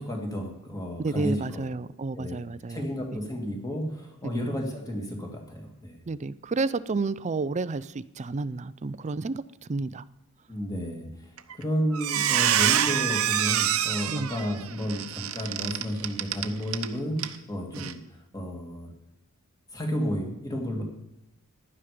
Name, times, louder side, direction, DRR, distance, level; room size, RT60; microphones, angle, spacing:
voice 1, 0.0-1.6 2.1-2.4 2.7-6.0 10.5-11.1 11.5-18.0 18.3-18.9 19.7-20.8, equal, 15° left, 2 dB, 2.3 m, -32 dB
voice 2, 1.0-2.8 4.2-4.5 6.1-9.4 9.7-10.0 14.1-14.3 17.7-17.9, right 3 dB, 30° right, 16 dB, 0.4 m, -31 dB
Squeak, 11.4-11.6 11.9-16.9 17.2-17.4 17.8-17.9, right 10 dB, 70° right, 0.9 m, -26 dB
15.5 x 11.0 x 5.0 m, 0.91 s
head